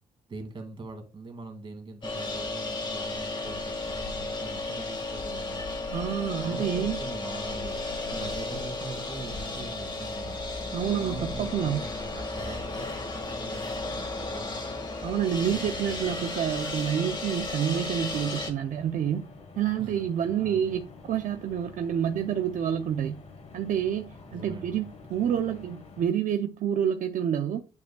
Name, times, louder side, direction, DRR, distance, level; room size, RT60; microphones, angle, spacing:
voice 1, 0.3-5.7 6.4-7.8 8.1-10.4 10.9-14.8 15.4-16.2 19.8-20.8 24.3-24.9, right 3 dB, 35° right, 2.3 m, -42 dB
sound 1, 2.0-18.5, left 2 dB, 35° left, 1.7 m, -34 dB
voice 2, 5.9-7.0 10.7-11.8 15.0-19.3 19.6-23.2 23.5-27.6, right 9 dB, 65° right, 0.6 m, -28 dB
sound 2, 17.8-26.0, left 4 dB, 50° left, 1.6 m, -48 dB
9.3 x 5.3 x 2.3 m
cardioid pair, 105°, 14 cm